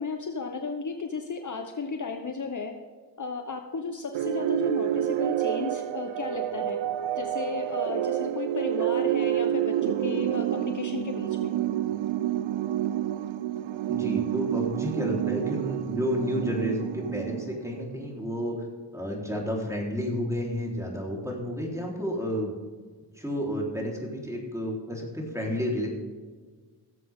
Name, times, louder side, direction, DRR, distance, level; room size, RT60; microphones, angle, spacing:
voice 1, 0.0-2.7 3.2-6.8 7.1-11.5, left 4 dB, 40° left, 5 dB, 1.1 m, -34 dB
sound 1, 4.1-17.9, right 12 dB, 85° right, 0.6 m, -29 dB
voice 2, 13.9-18.6 18.9-22.5 23.1-25.9, equal, 5° right, -2 dB, 4.0 m, -31 dB
17.5 x 7.6 x 3.7 m, 1.5 s
cardioid pair, 60°, 46 cm